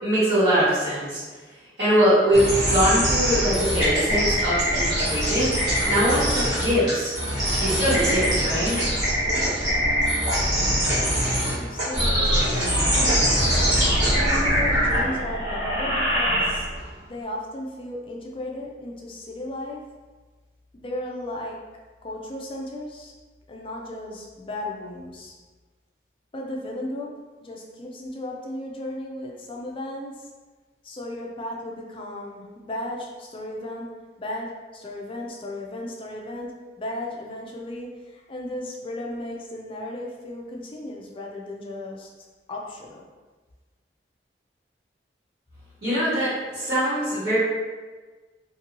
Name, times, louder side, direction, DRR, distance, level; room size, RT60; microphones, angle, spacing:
voice 1, 0.0-1.2 1.8-7.1 7.6-8.8 45.8-47.4, equal, 60° right, -17 dB, 1.4 m, -22 dB
sound 1, 2.3-16.9, equal, 25° right, 1.2 m, -23 dB
voice 2, 10.9-13.5 14.1-16.7 17.0-19.9 20.7-21.6 22.0-23.1 23.5-25.3 26.3-27.1 27.4-30.3 30.8-42.1 42.5-43.0, left 1 dB, 30° left, -1 dB, 0.4 m, -35 dB
2.6 x 2.6 x 2.9 m, 1.3 s
head